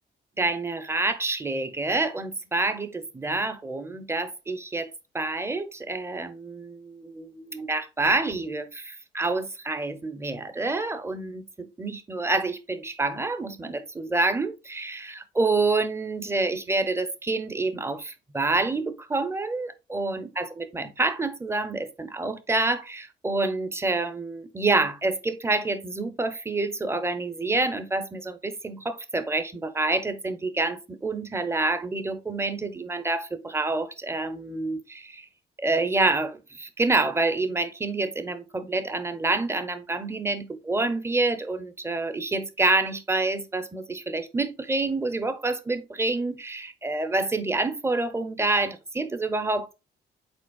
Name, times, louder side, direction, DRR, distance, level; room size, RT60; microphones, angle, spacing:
voice 1, 0.4-35.3 35.6-49.7, right 3 dB, 15° right, 0.6 m, -27 dB
5.2 x 4.0 x 2.3 m
cardioid pair, 90°, 20 cm